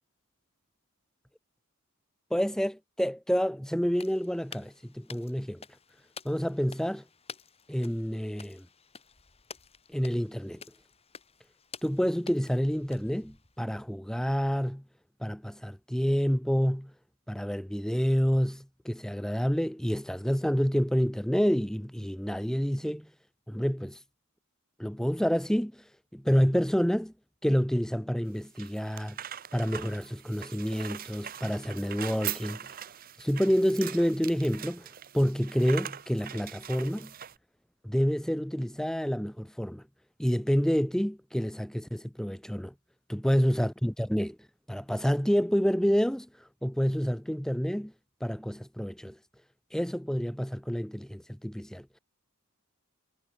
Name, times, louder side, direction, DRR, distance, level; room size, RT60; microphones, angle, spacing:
voice 1, 2.3-5.6 6.2-7.0 7.7-8.7 9.9-10.6 11.8-14.8 15.2-16.9 17.3-23.1 23.5-24.0 24.8-25.8 26.1-27.1 27.4-29.2 29.5-32.6 33.2-34.9 35.1-37.1 37.8-39.8 40.2-42.7 43.1-44.4 44.7-46.3 46.6-47.9 48.2-49.2 49.7-52.0, equal, ahead, 0.9 m, -28 dB
sound 1, 3.9-13.7, left 5 dB, 25° left, 3.0 m, -50 dB
sound 2, 28.3-37.4, right 10 dB, 40° right, 0.7 m, -41 dB
head